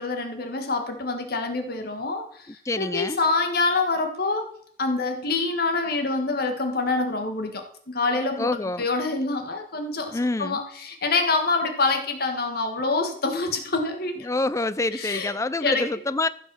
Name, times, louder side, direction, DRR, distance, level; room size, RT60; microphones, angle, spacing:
voice 1, 0.0-4.5 4.8-14.2 14.9-15.3 15.6-15.8, left 3 dB, 55° left, 1.7 m, -26 dB
voice 2, 2.5-3.2 8.4-8.9 10.1-10.6 14.2-16.3, left 2 dB, 15° left, 0.4 m, -26 dB
15.0 x 5.8 x 6.2 m
head